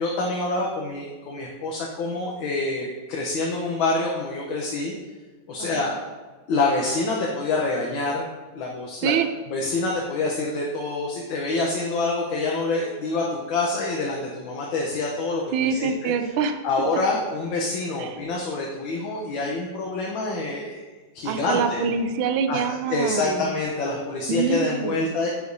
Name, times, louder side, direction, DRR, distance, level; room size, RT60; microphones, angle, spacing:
voice 1, 0.0-4.9 5.5-6.0 6.5-8.3 8.5-9.1 9.5-16.1 16.6-20.8 21.1-21.8 22.5-22.6 22.9-25.3, left 3 dB, 75° left, -2 dB, 1.6 m, -26 dB
voice 2, 15.5-16.6 18.0-18.2 21.2-23.5 24.3-25.0, right 6 dB, 80° right, 8 dB, 1.4 m, -25 dB
9.9 x 5.0 x 2.6 m, 1.3 s
omnidirectional pair, 2.2 m